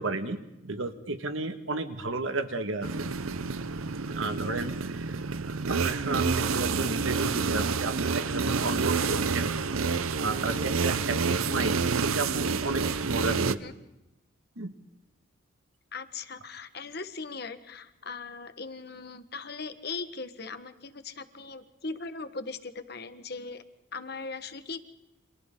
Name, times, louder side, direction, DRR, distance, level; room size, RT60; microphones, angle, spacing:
voice 1, 0.0-3.1 4.1-5.2 5.5-9.6 10.1-13.6 14.6-14.7, right 3 dB, 75° right, 8 dB, 1.9 m, -33 dB
sound 1, 2.8-13.6, right 4 dB, 90° right, 0.8 m, -28 dB
voice 2, 13.3-13.7 15.9-23.6 23.9-24.8, left 4 dB, 50° left, 9 dB, 1.4 m, -39 dB
30.0 x 26.5 x 3.9 m, 0.93 s
head